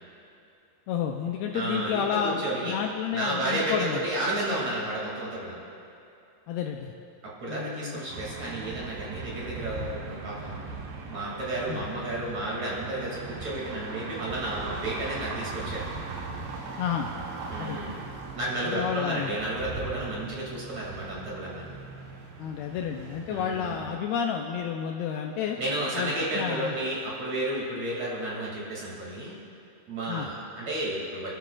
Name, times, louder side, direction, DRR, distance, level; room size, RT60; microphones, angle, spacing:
voice 1, 0.9-4.1 6.5-6.9 7.5-8.0 11.7-11.8 16.8-17.1 17.6-17.8 18.7-19.3 22.4-25.6 26.0-26.7 30.1-30.3, left 8 dB, 90° left, 2 dB, 2.2 m, -30 dB
voice 2, 1.5-2.8 3.1-5.6 7.2-10.6 11.1-15.8 17.5-18.0 18.3-21.7 23.3-23.7 25.6-29.4 29.9-31.3, right 1 dB, 45° right, -5 dB, 3.2 m, -32 dB
sound 1, 8.1-24.0, right 4 dB, 65° right, 2.4 m, -39 dB
27.0 x 12.0 x 2.4 m, 2.7 s
omnidirectional pair, 5.1 m